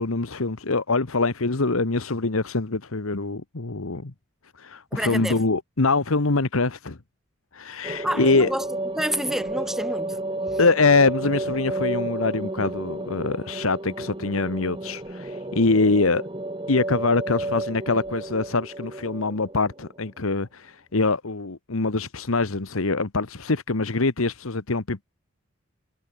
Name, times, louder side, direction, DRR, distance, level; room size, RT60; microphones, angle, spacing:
voice 1, 0.0-4.1 4.6-7.0 7.5-8.5 10.6-16.2 16.7-25.0, left 3 dB, 80° left, 1.3 m, -24 dB
voice 2, 4.9-5.4 8.0-8.7 9.0-10.2 10.5-10.6, equal, ahead, 5.4 m, -29 dB
sound 1, 7.8-20.1, right 2 dB, 25° right, 1.1 m, -32 dB
head